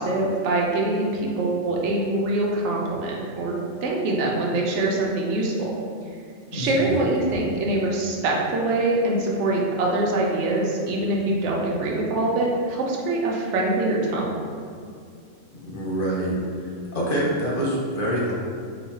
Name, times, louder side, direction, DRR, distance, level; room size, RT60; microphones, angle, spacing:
voice 1, 0.0-5.7 6.5-14.3, right 2 dB, 70° right, -2 dB, 0.9 m, -24 dB
voice 2, 6.5-6.9 15.6-18.3, equal, 50° left, -5 dB, 0.8 m, -26 dB
3.0 x 2.2 x 4.1 m, 2.3 s
omnidirectional pair, 1.3 m